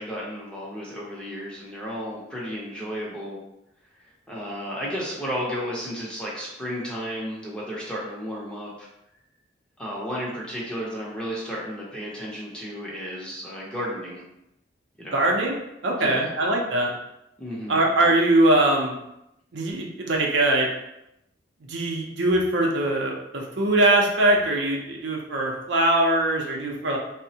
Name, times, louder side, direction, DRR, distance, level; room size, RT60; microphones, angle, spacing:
voice 1, 0.0-3.4 4.0-8.9 9.8-14.2 15.0-15.2 16.0-16.3 17.4-17.8, equal, 5° left, -6 dB, 0.6 m, -33 dB
voice 2, 15.1-15.5 15.8-16.9 17.7-19.0 19.5-20.7 21.7-27.0, right 1 dB, 75° right, -1 dB, 0.6 m, -22 dB
3.4 x 2.0 x 2.7 m, 0.84 s
head